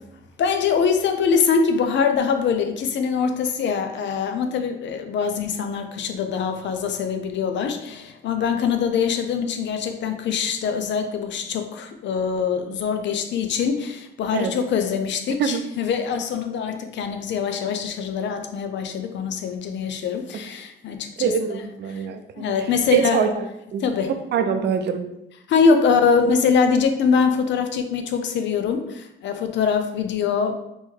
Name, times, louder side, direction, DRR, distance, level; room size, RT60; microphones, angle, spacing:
voice 1, 0.4-21.6 21.9-22.1 22.4-23.2 23.8-24.1 25.5-30.6, left 6 dB, 65° left, 7 dB, 0.5 m, -23 dB
voice 2, 21.2-22.5 22.9-23.5 23.7-25.1, right 7 dB, 60° right, 8 dB, 0.5 m, -24 dB
3.0 x 2.6 x 3.7 m, 0.85 s
cardioid pair, 90°, 20 cm